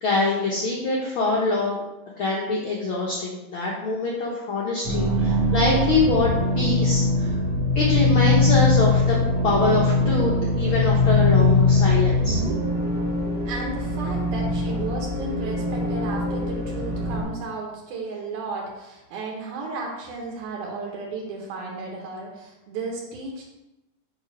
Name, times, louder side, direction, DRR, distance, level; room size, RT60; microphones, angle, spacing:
voice 1, 0.0-1.8 2.2-6.3 6.6-7.3 7.7-9.2 9.4-12.4, left 2 dB, 90° left, -3 dB, 1.1 m, -24 dB
sound 1, 4.8-17.2, left 2 dB, 50° right, 1.3 m, -22 dB
voice 2, 13.5-23.4, right 3 dB, 80° right, -1 dB, 2.4 m, -34 dB
7.0 x 3.3 x 5.0 m, 1.0 s
omnidirectional pair, 3.5 m